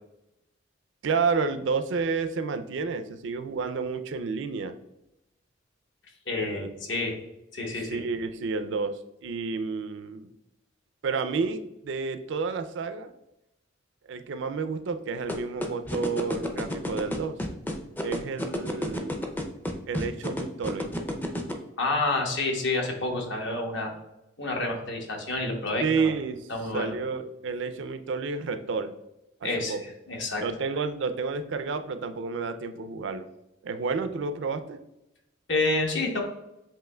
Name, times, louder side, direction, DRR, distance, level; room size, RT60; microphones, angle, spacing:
voice 1, 1.0-4.7 6.3-6.7 7.8-10.3 11.0-13.1 14.0-17.4 18.0-19.2 19.9-20.9 25.8-28.9 29.7-29.8 30.4-33.3 33.6-34.8, right 4 dB, 60° right, 10 dB, 0.4 m, -30 dB
voice 2, 6.3-7.2 7.5-8.0 21.8-23.9 24.4-26.1 26.5-26.9 29.4-29.8 30.1-30.4 35.5-36.2, left 2 dB, 60° left, 1 dB, 1.0 m, -28 dB
sound 1, 15.3-21.5, left 1 dB, 10° left, 0.4 m, -30 dB
7.5 x 3.0 x 2.2 m, 0.88 s
head